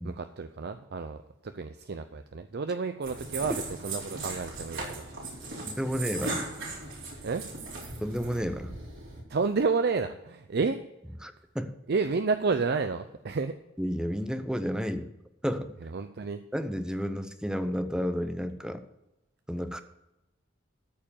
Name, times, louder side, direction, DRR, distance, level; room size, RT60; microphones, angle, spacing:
voice 1, 0.0-5.0 7.2-7.4 9.3-10.8 11.9-13.5 15.8-16.4, right 4 dB, 55° right, 9 dB, 0.5 m, -30 dB
sound 1, 3.0-9.2, right 3 dB, 85° right, 4.0 m, -38 dB
voice 2, 5.7-6.5 8.0-8.7 11.2-11.7 13.8-15.1 15.4-15.7 16.5-18.8 19.5-19.8, equal, 5° right, 9 dB, 0.7 m, -31 dB
13.5 x 4.6 x 7.2 m, 0.93 s
head